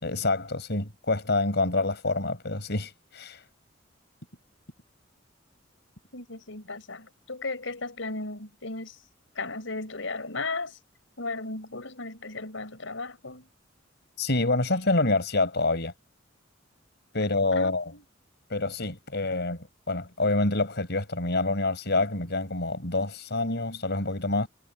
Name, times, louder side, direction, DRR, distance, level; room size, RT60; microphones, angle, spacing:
voice 1, 0.0-3.4 14.2-15.9 17.1-17.8 18.5-24.5, left 2 dB, 60° left, 5.8 m, -27 dB
voice 2, 6.1-9.0 9.3-10.8 11.2-13.5 17.5-18.0, left 3 dB, 90° left, 4.6 m, -36 dB
head